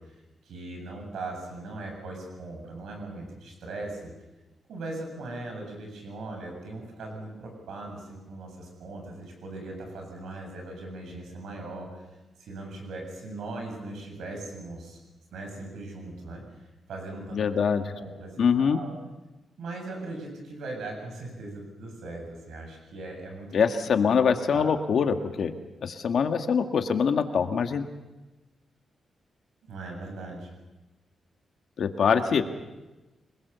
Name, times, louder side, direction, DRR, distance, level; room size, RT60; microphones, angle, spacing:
voice 1, 0.0-4.1 4.7-12.1 12.4-15.0 15.3-17.4 17.9-18.9 19.6-24.7 29.7-30.5 32.4-32.5, right 2 dB, 90° right, 2 dB, 7.7 m, -39 dB
voice 2, 17.3-17.9 18.4-18.8 23.5-25.5 25.8-27.9 31.8-32.4, left 6 dB, 65° left, 6 dB, 1.8 m, -24 dB
27.0 x 21.0 x 7.0 m, 1.1 s
cardioid pair, 125°, 0 cm